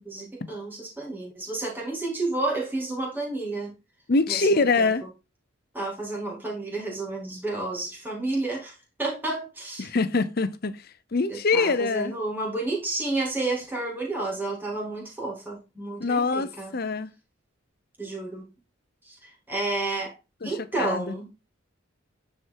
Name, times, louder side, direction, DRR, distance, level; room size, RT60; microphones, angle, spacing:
voice 1, 0.1-3.7 4.3-4.6 5.7-9.9 11.3-16.7 18.0-18.5 19.0-20.1 20.4-21.3, right 2 dB, 10° right, 2.3 m, -31 dB
voice 2, 4.1-5.1 9.8-12.1 16.0-17.1 20.4-21.1, left 3 dB, 45° left, 0.6 m, -24 dB
9.4 x 4.5 x 3.7 m
head